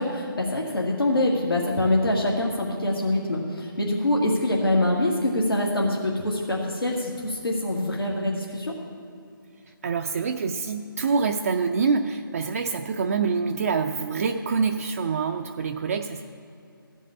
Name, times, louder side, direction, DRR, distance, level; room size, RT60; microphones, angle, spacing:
voice 1, 0.0-8.7, left 1 dB, 85° left, -2 dB, 1.9 m, -24 dB
voice 2, 9.8-16.2, right 5 dB, 40° right, 3 dB, 0.5 m, -26 dB
15.0 x 5.5 x 9.7 m, 2.5 s
figure-of-eight pair, 150°, 12 cm